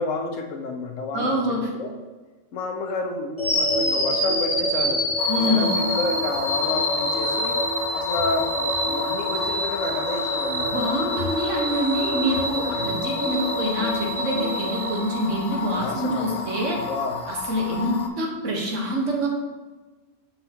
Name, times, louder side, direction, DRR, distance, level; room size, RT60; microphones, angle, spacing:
voice 1, 0.0-1.9 2.5-5.0 5.5-7.6 7.9-11.1 12.4-12.9 15.8-16.4 16.8-17.2, left 3 dB, 80° left, 3 dB, 1.2 m, -30 dB
voice 2, 1.1-1.7 5.3-5.7 10.7-16.9 17.3-19.3, equal, 75° right, -1 dB, 1.5 m, -26 dB
sound 1, 3.4-15.5, equal, 25° left, 1.0 m, -26 dB
sound 2, 5.2-18.1, left 5 dB, 55° left, 0.8 m, -32 dB
6.7 x 5.6 x 2.8 m, 1.2 s
omnidirectional pair, 1.3 m